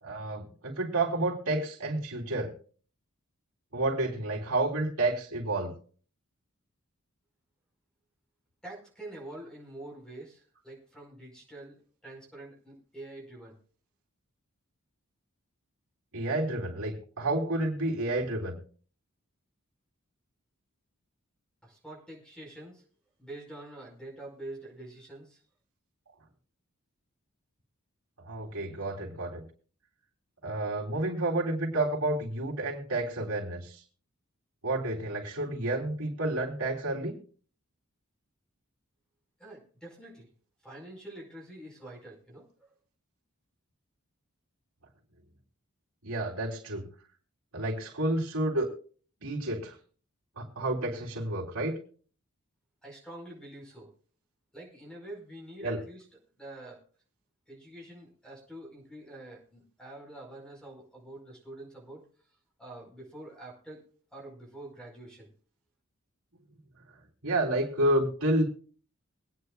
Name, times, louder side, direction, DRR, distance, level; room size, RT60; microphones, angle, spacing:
voice 1, 0.0-2.5 3.7-5.7 16.1-18.6 28.2-29.4 30.4-33.8 34.6-37.2 46.0-46.8 47.5-48.7 49.2-49.7 50.4-51.8 55.6-55.8 67.2-68.4, right 2 dB, 85° right, -3 dB, 3.5 m, -30 dB
voice 2, 8.6-13.5 21.6-22.8 23.2-25.4 39.4-40.3 40.6-42.7 52.8-53.9 54.5-56.1 56.4-56.8 57.5-62.1 62.6-63.8 64.1-65.3, right 1 dB, 5° left, 0 dB, 5.0 m, -46 dB
23.5 x 9.6 x 2.4 m, 0.43 s
head